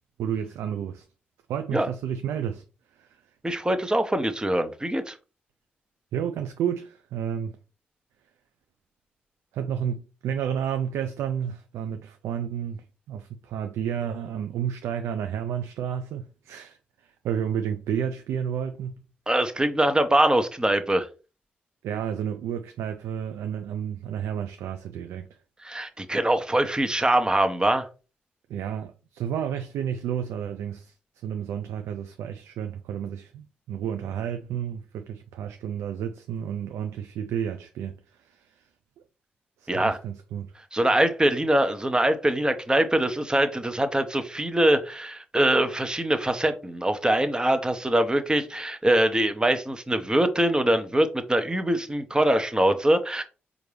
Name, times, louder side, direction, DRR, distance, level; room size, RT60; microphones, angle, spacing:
voice 1, 0.2-1.1 1.5-2.6 2.9-3.2 6.1-7.6 9.5-18.9 21.8-25.4 28.5-38.7 39.6-40.5, right 8 dB, 80° right, 0.4 m, -31 dB
voice 2, 3.4-5.2 19.3-21.1 25.6-27.9 39.7-40.0 40.7-53.2, right 1 dB, 20° right, 0.8 m, -23 dB
4.4 x 2.5 x 3.3 m
supercardioid pair, 45°, 5 cm